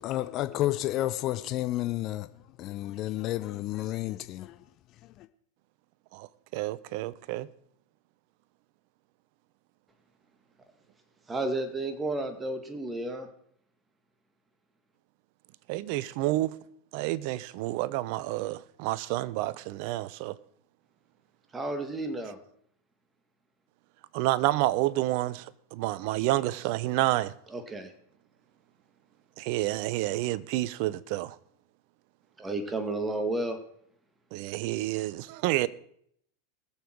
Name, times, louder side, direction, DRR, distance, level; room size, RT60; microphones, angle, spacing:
voice 1, 0.0-2.3 2.6-4.6 5.2-5.3, left 15 dB, 45° left, 0.7 m, -31 dB
voice 2, 6.5-7.5 15.7-16.5 16.9-20.4 24.1-27.3 29.4-31.4 34.3-35.7, right 17 dB, 55° right, 0.7 m, -29 dB
voice 3, 11.3-13.3 21.5-22.4 27.5-27.9 32.4-33.6, right 2 dB, 15° right, 2.1 m, -32 dB
21.0 x 7.2 x 4.7 m
hypercardioid pair, 100°, 0 cm